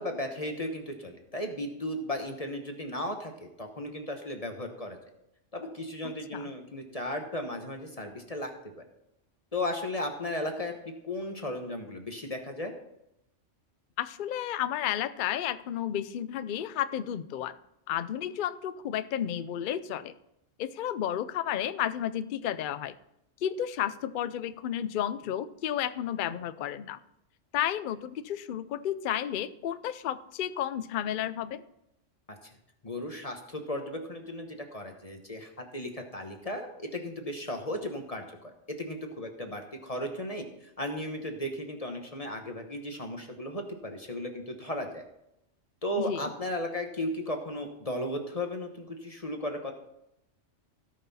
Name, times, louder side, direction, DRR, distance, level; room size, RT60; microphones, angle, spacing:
voice 1, 0.0-5.0 5.5-8.5 9.5-10.7 11.0-12.7 32.3-32.5 32.8-45.0 45.8-49.7, left 1 dB, 30° left, 4 dB, 1.1 m, -35 dB
voice 2, 14.0-17.6 17.9-20.1 20.6-22.9 23.4-27.0 27.5-31.6 46.1-46.2, left 10 dB, 55° left, 13 dB, 0.6 m, -32 dB
16.5 x 5.9 x 4.2 m, 0.82 s
omnidirectional pair, 1.3 m